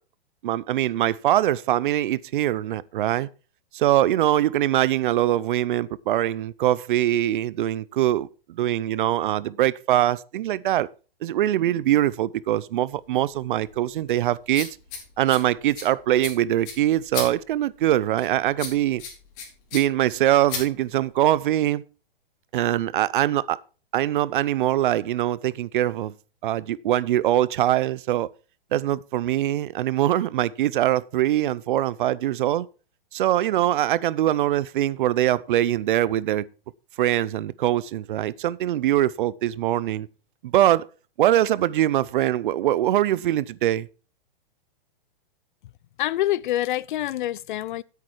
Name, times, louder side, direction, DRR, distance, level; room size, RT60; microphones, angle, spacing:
voice 1, 0.4-3.3 3.7-10.9 11.2-14.7 15.2-19.0 19.7-21.8 22.5-23.6 23.9-26.1 26.4-28.3 28.7-32.7 33.1-36.5 37.0-40.1 40.4-40.9 41.2-43.9, right 13 dB, 60° right, 0.6 m, -23 dB
sound 1, 12.9-21.3, left 5 dB, 35° left, 4.9 m, -38 dB
voice 2, 46.0-47.8, left 14 dB, 55° left, 0.6 m, -26 dB
9.8 x 8.5 x 4.6 m
hypercardioid pair, 150°, 29 cm